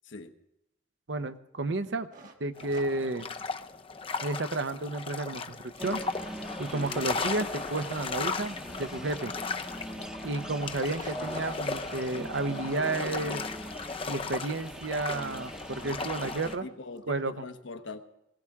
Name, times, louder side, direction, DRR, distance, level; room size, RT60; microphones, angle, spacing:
voice 1, 1.1-2.1 2.4-3.3 4.2-6.0 6.6-9.3 10.2-13.5 14.1-16.7 17.1-17.3, right 2 dB, 65° right, 10 dB, 0.8 m, -32 dB
sound 1, 2.1-3.8 4.2-4.3 4.9-7.4 7.8-8.6 8.9-9.0 9.4-9.5 9.6-9.7 10.4-10.5 10.8-11.6 15.4-17.2, right 2 dB, 40° right, 1.4 m, -50 dB
sound 2, 2.6-16.6, left 4 dB, 30° left, 0.5 m, -37 dB
sound 3, 5.8-16.6, equal, 5° right, 0.8 m, -42 dB
voice 2, 16.6-18.0, left 3 dB, 75° left, 7 dB, 1.0 m, -42 dB
20.5 x 17.0 x 3.6 m, 0.84 s
head